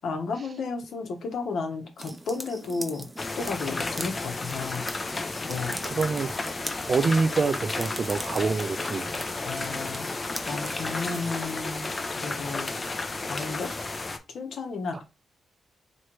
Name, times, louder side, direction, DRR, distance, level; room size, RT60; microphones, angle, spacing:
voice 1, 0.0-3.1 3.3-4.8 5.4-5.7 9.4-10.1 10.5-11.9 12.2-12.7 13.2-13.7 14.3-15.0, left 4 dB, 70° left, 1.0 m, -33 dB
sound 1, 2.0-11.6, right 1 dB, 15° right, 0.7 m, -42 dB
sound 2, 3.2-14.2, left 3 dB, 25° left, 0.6 m, -33 dB
voice 2, 5.8-6.3 6.9-9.2, right 4 dB, 40° right, 0.3 m, -26 dB
3.1 x 3.1 x 4.5 m
wide cardioid pair, 130°, 0 cm